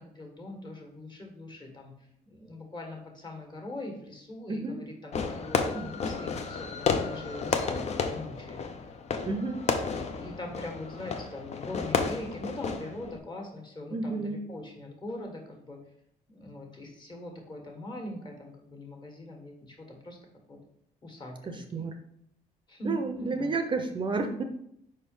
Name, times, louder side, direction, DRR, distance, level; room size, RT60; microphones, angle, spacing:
voice 1, 0.0-8.6 9.1-9.4 10.1-15.8 16.3-20.2 20.5-20.6 21.0-21.9 22.7-23.6, left 1 dB, 30° left, 2 dB, 1.7 m, -42 dB
voice 2, 4.5-4.8 9.2-9.6 13.9-14.4 21.5-21.9 22.8-24.4, right 3 dB, 30° right, 6 dB, 0.6 m, -31 dB
Fireworks, 5.1-13.2, left 5 dB, 45° left, 0.7 m, -32 dB
5.0 x 4.3 x 5.3 m, 0.74 s
cardioid pair, 120°, 16 cm